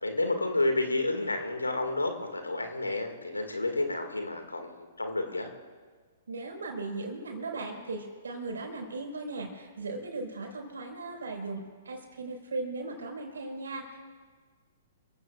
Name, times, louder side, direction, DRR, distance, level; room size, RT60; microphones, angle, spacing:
voice 1, 0.0-5.5, left 2 dB, 85° left, 4 dB, 2.2 m, -30 dB
voice 2, 6.3-14.0, right 3 dB, 75° right, 1 dB, 5.1 m, -37 dB
28.5 x 16.0 x 2.5 m, 1.5 s
figure-of-eight pair, 115°, 0 cm